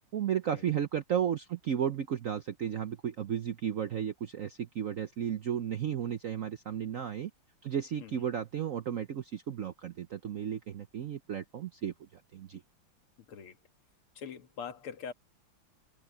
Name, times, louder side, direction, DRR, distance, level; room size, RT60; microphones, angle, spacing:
voice 1, 0.1-7.3 7.6-12.6, right 9 dB, 75° right, 0.7 m, -34 dB
voice 2, 14.2-15.1, left 7 dB, 80° left, 2.4 m, -43 dB
omnidirectional pair, 2.4 m